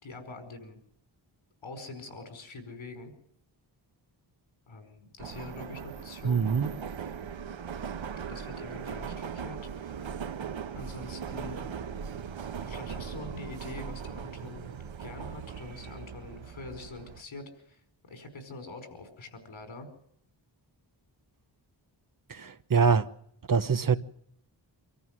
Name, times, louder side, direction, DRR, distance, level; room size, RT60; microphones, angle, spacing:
voice 1, 0.0-0.8 1.6-3.1 4.7-6.5 8.3-9.6 10.7-11.6 12.6-14.7 15.0-17.8 18.0-19.9, left 2 dB, 85° left, 5.0 m, -44 dB
Subway metro underground, 5.2-17.2, right 7 dB, 80° right, 1.2 m, -39 dB
voice 2, 6.2-6.7 22.3-23.1 23.5-24.0, right 5 dB, 45° right, 1.0 m, -24 dB
25.5 x 14.5 x 7.4 m
wide cardioid pair, 150°, 46 cm